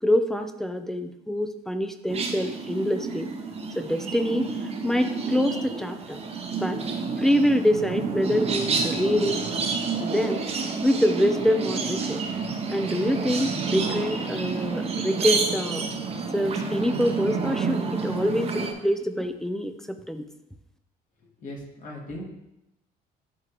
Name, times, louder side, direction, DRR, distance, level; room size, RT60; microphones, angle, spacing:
voice 1, 0.0-3.3 3.8-4.5 4.8-6.2 6.5-6.8 7.2-9.5 10.0-10.4 10.8-12.2 12.7-15.8 16.3-20.2, equal, 5° left, 8 dB, 0.5 m, -25 dB
sound 1, 2.1-18.7, right 4 dB, 40° right, 0.9 m, -29 dB
voice 2, 21.4-22.2, left 1 dB, 50° left, -3 dB, 2.0 m, -38 dB
10.5 x 3.7 x 3.1 m, 0.89 s
cardioid pair, 110°, 17 cm